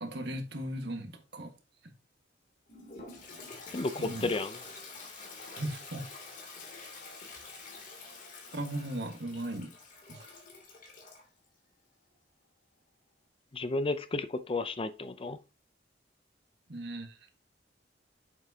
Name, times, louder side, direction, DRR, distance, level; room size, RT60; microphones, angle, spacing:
voice 1, 0.0-1.5 3.9-4.3 5.6-6.1 8.5-9.7 10.1-10.3 16.7-17.3, right 1 dB, 65° right, 1.7 m, -37 dB
Toilet flush, 2.7-11.3, left 3 dB, 50° left, 2.9 m, -47 dB
voice 2, 3.7-4.6 13.5-15.4, left 3 dB, 30° left, 0.5 m, -32 dB
8.3 x 7.5 x 2.8 m
head